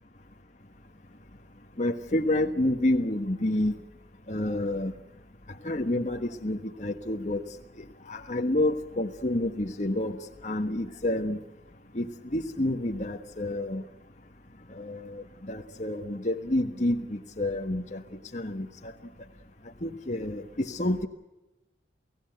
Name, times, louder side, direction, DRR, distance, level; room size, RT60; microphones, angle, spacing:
voice 1, 1.8-3.7 4.3-4.9 5.6-7.4 8.1-11.4 11.9-13.8 14.7-18.0 18.3-18.7 19.8-21.1, left 1 dB, 40° left, 3 dB, 1.3 m, -29 dB
29.0 x 17.0 x 8.0 m, 1.0 s
head